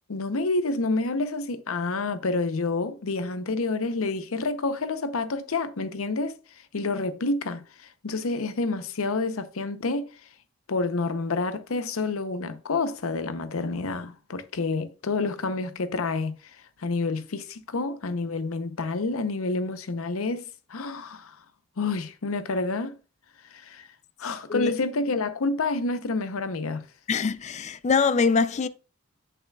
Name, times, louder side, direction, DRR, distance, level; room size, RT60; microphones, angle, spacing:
voice 1, 0.1-6.4 6.7-10.1 10.7-21.4 21.8-23.0 23.5-23.9 24.2-26.9, left 3 dB, 90° left, 0.7 m, -28 dB
voice 2, 27.1-28.7, left 5 dB, 35° left, 0.3 m, -23 dB
8.2 x 7.2 x 2.3 m
head